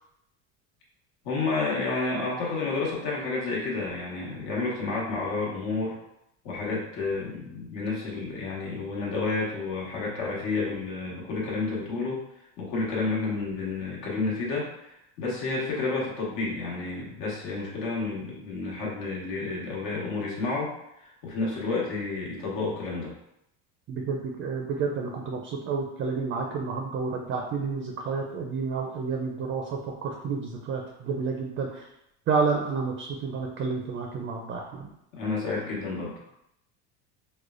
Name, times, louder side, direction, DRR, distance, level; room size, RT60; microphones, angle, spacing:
voice 1, 1.2-6.0 6.4-12.2 12.6-20.7 21.0-23.1 35.1-36.2, left 3 dB, 75° left, -4 dB, 1.3 m, -30 dB
voice 2, 23.9-31.9 32.3-34.9, right 5 dB, 35° right, 2 dB, 0.4 m, -30 dB
4.9 x 2.1 x 2.4 m, 0.80 s
cardioid pair, 135°, 35 cm